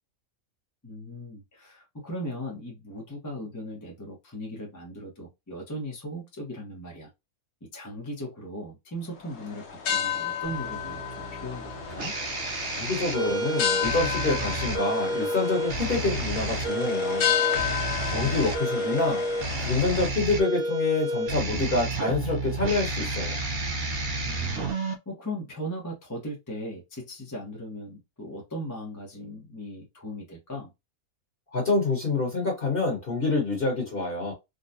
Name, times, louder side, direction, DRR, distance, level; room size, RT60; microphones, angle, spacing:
voice 1, 0.8-7.1 7.6-12.1 17.7-18.5 24.2-30.7, equal, 15° left, 0.7 m, -38 dB
sound 1, 9.2-20.1, left 9 dB, 70° left, 1.2 m, -32 dB
sound 2, 10.4-24.9, right 2 dB, 50° right, 0.9 m, -30 dB
voice 2, 12.8-17.3 18.1-19.2 19.6-23.4 31.5-34.3, left 3 dB, 45° left, 1.3 m, -27 dB
3.8 x 2.2 x 2.6 m
omnidirectional pair, 1.4 m